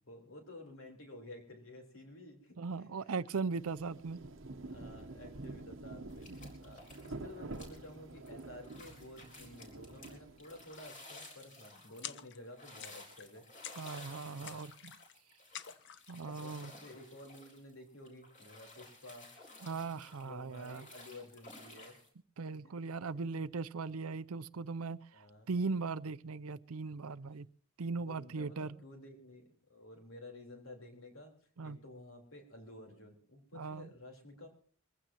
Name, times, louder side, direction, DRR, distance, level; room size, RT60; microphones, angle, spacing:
voice 1, 0.0-3.3 3.9-4.0 4.7-13.5 14.4-14.6 16.2-19.3 20.2-22.0 22.6-22.7 23.2-23.4 25.1-25.5 28.0-31.3 31.6-34.5, left 1 dB, 70° left, 3.9 m, -52 dB
voice 2, 2.6-4.2 6.3-6.4 13.7-14.9 16.1-16.7 19.6-20.9 22.4-27.5 27.8-28.8 31.6-31.8 33.5-33.9, right 4 dB, 80° right, 0.6 m, -39 dB
Rain, 3.5-10.8, right 2 dB, 60° right, 1.0 m, -48 dB
sound 1, 6.1-7.2 7.5-22.1, left 2 dB, 35° left, 4.0 m, -55 dB
sound 2, 12.0-12.5 12.8-13.3 13.6-14.1 14.5-15.1 15.5-16.2, left 10 dB, 55° left, 0.7 m, -48 dB
22.5 x 15.5 x 2.9 m
head